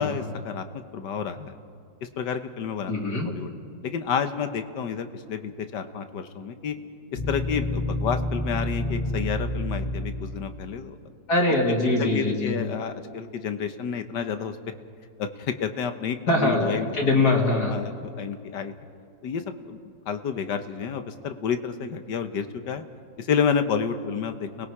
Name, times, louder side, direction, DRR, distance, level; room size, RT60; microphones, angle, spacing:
voice 1, 0.0-1.6 2.0-2.9 3.3-3.5 3.8-6.8 7.1-11.0 12.0-14.6 15.2-16.9 17.5-18.7 19.2-19.8 20.1-22.8 23.2-24.7, left 7 dB, 80° left, 9 dB, 1.7 m, -30 dB
voice 2, 2.9-3.4 11.3-12.6 16.3-17.7, left 2 dB, 65° left, 0 dB, 3.2 m, -23 dB
sound 1, 7.2-10.6, left 1 dB, 35° left, 2.5 m, -29 dB
30.0 x 20.5 x 4.9 m, 2.4 s
omnidirectional pair, 1.9 m